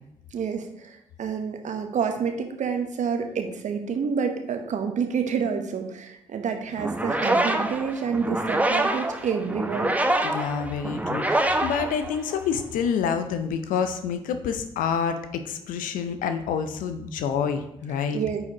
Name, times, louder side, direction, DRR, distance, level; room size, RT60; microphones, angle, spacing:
voice 1, 0.3-9.9 18.1-18.4, right 6 dB, 55° right, 6 dB, 1.0 m, -28 dB
sound 1, 6.8-12.6, right 1 dB, 10° right, 0.8 m, -26 dB
voice 2, 10.2-18.2, left 7 dB, 70° left, 9 dB, 0.6 m, -28 dB
9.3 x 4.8 x 2.9 m, 0.81 s
hypercardioid pair, 40°, 15 cm